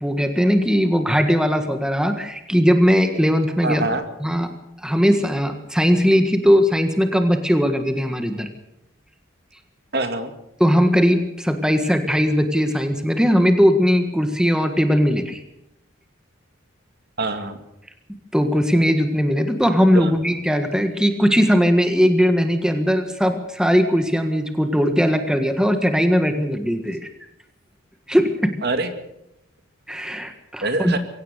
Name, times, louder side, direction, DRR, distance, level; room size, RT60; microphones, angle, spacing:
voice 1, 0.0-3.9 4.2-4.5 4.8-8.5 10.6-15.4 18.3-27.1 28.1-28.5 29.9-30.9, equal, 5° right, 6 dB, 1.6 m, -19 dB
voice 2, 3.6-4.0 9.9-10.3 17.2-17.6 19.9-20.1 28.6-28.9 30.6-31.0, right 2 dB, 50° right, 8 dB, 2.3 m, -24 dB
23.0 x 17.5 x 6.7 m, 0.83 s
head